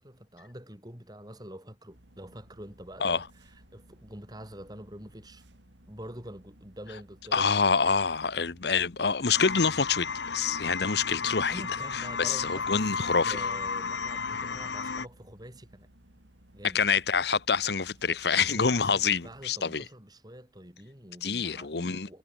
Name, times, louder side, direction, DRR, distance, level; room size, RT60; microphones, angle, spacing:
voice 1, 0.0-5.4 5.9-7.5 11.5-12.9 13.2-15.9 16.5-16.8 18.3-22.2, right 1 dB, 20° right, 7.5 m, -46 dB
sound 1, 1.9-19.5, right 1 dB, 85° right, 5.1 m, -58 dB
voice 2, 7.3-11.6 11.9-13.4 16.7-19.8 21.2-22.2, left 5 dB, 65° left, 1.0 m, -26 dB
sound 2, 9.3-15.1, left 5 dB, 80° left, 1.5 m, -33 dB
head